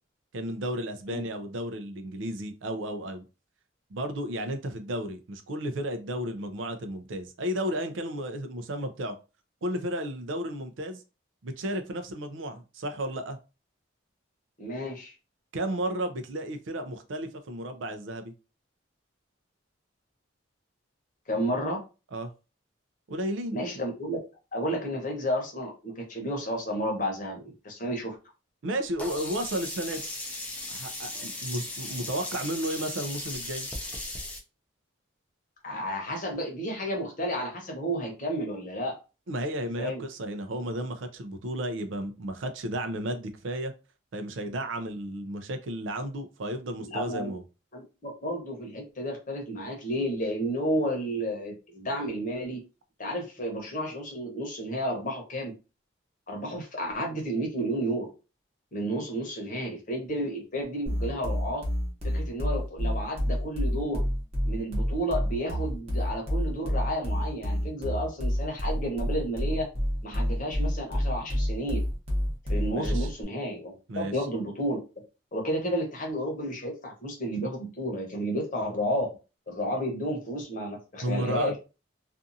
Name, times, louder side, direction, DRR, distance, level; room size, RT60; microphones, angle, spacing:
voice 1, 0.3-3.2 3.9-9.1 9.6-11.0 11.4-13.4 15.5-18.3 22.1-22.3 23.1-23.6 28.6-30.0 30.7-33.7 39.3-43.7 44.1-47.4 72.7-73.1 73.9-74.3 81.0-81.6, right 1 dB, 70° right, 0.5 m, -33 dB
voice 2, 14.6-15.1 21.3-21.8 23.5-24.2 24.5-28.2 35.6-38.9 39.8-40.0 46.8-47.3 47.7-52.6 53.0-55.5 56.3-58.1 58.7-61.6 62.0-64.1 64.4-69.7 70.0-71.8 72.5-75.0 75.3-79.1 79.5-81.6, equal, 40° left, 0.9 m, -32 dB
Sink (filling or washing), 29.0-34.4, left 2 dB, 10° left, 0.4 m, -37 dB
sound 1, 60.9-73.2, equal, 30° right, 0.9 m, -28 dB
2.6 x 2.4 x 2.6 m
head